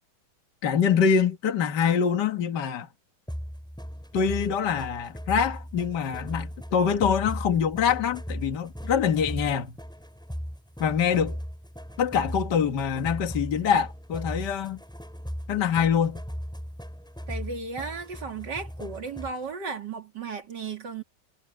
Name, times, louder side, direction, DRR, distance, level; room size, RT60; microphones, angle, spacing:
voice 1, 0.6-2.9 4.1-9.7 10.8-11.4 12.0-14.8 15.5-16.2, left 7 dB, 55° left, 2.0 m, -24 dB
sound 1, 3.3-19.5, equal, ahead, 7.8 m, -38 dB
voice 2, 17.3-21.0, right 4 dB, 55° right, 3.1 m, -35 dB
omnidirectional pair, 2.2 m